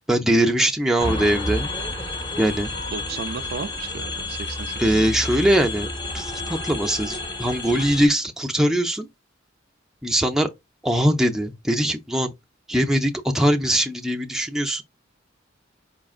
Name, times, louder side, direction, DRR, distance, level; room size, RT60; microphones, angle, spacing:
voice 1, 0.1-1.7 2.4-2.7 4.8-5.9 6.1-9.1 10.0-10.5 10.8-12.3 12.7-14.8, equal, ahead, 0.5 m, -21 dB
sound 1, 1.0-8.1, left 2 dB, 25° left, 0.9 m, -30 dB
voice 2, 2.9-5.2, right 5 dB, 55° right, 0.4 m, -34 dB
5.0 x 3.6 x 2.4 m
head